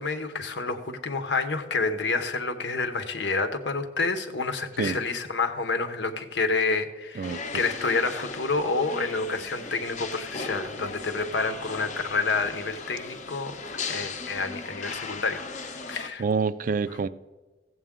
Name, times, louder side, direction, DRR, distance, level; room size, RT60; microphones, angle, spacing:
voice 1, 0.0-13.5 13.9-16.2, left 4 dB, 90° left, 0.9 m, -29 dB
sound 1, 7.2-16.1, left 4 dB, 45° left, 0.7 m, -37 dB
voice 2, 7.2-7.6 16.2-17.1, right 5 dB, 50° right, 0.3 m, -27 dB
15.0 x 7.9 x 3.7 m
head